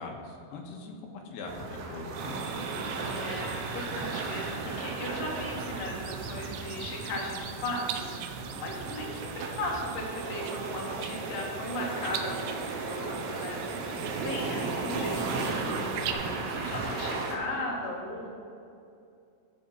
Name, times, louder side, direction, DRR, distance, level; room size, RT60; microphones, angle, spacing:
voice 1, 0.0-2.4, left 3 dB, 75° left, 1 dB, 2.9 m, -41 dB
sound 1, 1.5-17.4, right 3 dB, 70° right, 2.9 m, -35 dB
sound 2, 2.2-16.1, right 8 dB, 90° right, 3.0 m, -41 dB
voice 2, 3.0-13.9 14.2-18.4, left 1 dB, 55° left, -3 dB, 3.3 m, -37 dB
15.0 x 5.1 x 6.3 m, 2.5 s
omnidirectional pair, 5.3 m